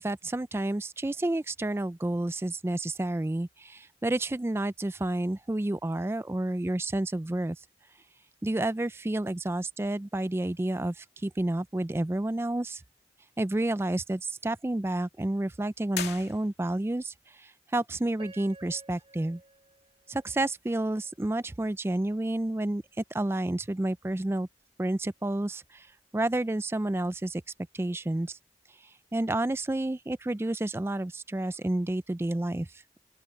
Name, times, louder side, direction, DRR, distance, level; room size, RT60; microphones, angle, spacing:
voice 1, 0.0-7.6 8.4-12.8 13.4-19.4 20.1-24.5 24.8-25.9 26.1-27.4 27.7-28.4 29.1-32.8, right 1 dB, 15° right, 0.3 m, -30 dB
sound 1, 15.9-16.9, left 8 dB, 65° left, 2.6 m, -38 dB
Piano, 18.2-21.2 21.8-21.9 22.5-22.8, right 2 dB, 30° right, 3.2 m, -54 dB
open air
head